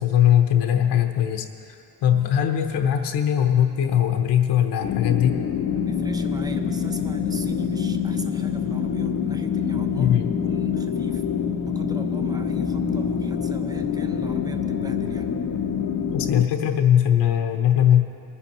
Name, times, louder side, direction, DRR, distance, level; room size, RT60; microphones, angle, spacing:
voice 1, 0.0-5.4 10.0-10.3 16.1-18.0, left 10 dB, 70° left, 4 dB, 0.9 m, -20 dB
sound 1, 4.8-16.4, left 7 dB, 40° left, 0.7 m, -26 dB
voice 2, 5.7-11.2 11.7-15.3, right 2 dB, 10° right, 6 dB, 0.7 m, -39 dB
21.5 x 10.0 x 3.0 m, 2.5 s
cardioid pair, 135°, 42 cm